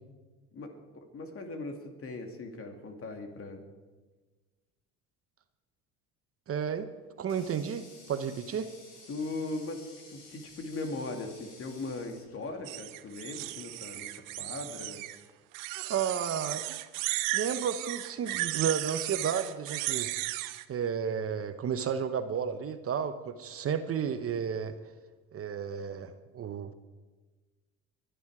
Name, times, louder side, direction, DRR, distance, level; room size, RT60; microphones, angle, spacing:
voice 1, 0.5-3.7 9.1-15.0, left 2 dB, 40° left, 4 dB, 2.5 m, -39 dB
voice 2, 6.5-6.9 7.2-8.7 15.8-16.8 17.3-20.1 20.7-24.8 25.3-26.7, right 7 dB, 40° right, 10 dB, 1.0 m, -32 dB
Water tap faucet, 6.6-13.1, left 2 dB, 85° left, 6.6 m, -54 dB
sound 1, 12.6-15.2 15.5-20.6, right 17 dB, 70° right, 0.8 m, -35 dB
22.5 x 10.5 x 4.9 m, 1.3 s
supercardioid pair, 80°, 34 cm